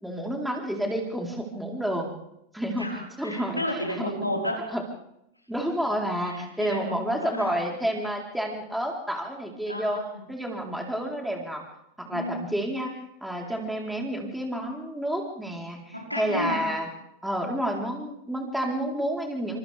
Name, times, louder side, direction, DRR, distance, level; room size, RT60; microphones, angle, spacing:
voice 1, 0.0-2.1 2.5-2.9 3.2-3.6 4.0-4.1 4.7-4.8 5.5-10.0 10.3-11.6 12.0-12.9 13.2-16.9 17.2-19.6, equal, ahead, 0 dB, 4.2 m, -30 dB
voice 2, 2.8-4.6 6.3-7.6 9.7-10.2 12.1-12.5 15.9-16.6, equal, 90° left, -1 dB, 4.9 m, -32 dB
29.0 x 26.5 x 3.6 m, 0.81 s
figure-of-eight pair, 90°, 0 cm